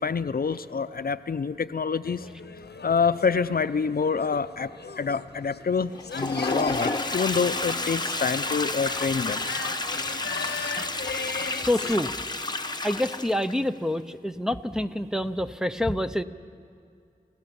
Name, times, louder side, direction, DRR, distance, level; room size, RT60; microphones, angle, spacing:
voice 1, 0.0-2.3 2.8-9.5, left 5 dB, 65° left, 12 dB, 0.6 m, -27 dB
sound 1, 2.0-12.0, left 5 dB, 85° left, 0.9 m, -39 dB
Toilet flush, 5.9-13.6, left 2 dB, 25° left, 0.9 m, -30 dB
voice 2, 11.6-12.1 12.8-16.2, left 1 dB, 5° right, 7 dB, 0.7 m, -27 dB
28.5 x 15.5 x 7.0 m, 2.3 s
wide cardioid pair, 75°, 17 cm